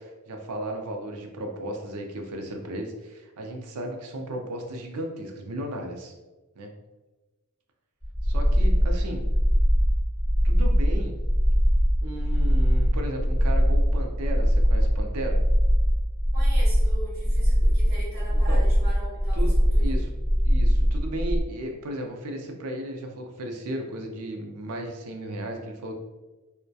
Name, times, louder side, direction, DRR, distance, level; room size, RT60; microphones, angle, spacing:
voice 1, 0.0-6.1 6.6-6.7 8.2-9.3 10.4-11.2 12.0-15.4 18.3-18.6 19.3-20.1 20.4-25.9, right 1 dB, 85° right, 3 dB, 0.4 m, -35 dB
sound 1, 8.0-21.4, equal, 15° right, 0.8 m, -21 dB
voice 2, 16.3-20.0, right 1 dB, 45° right, -7 dB, 1.2 m, -40 dB
2.2 x 2.1 x 2.6 m, 1.2 s
head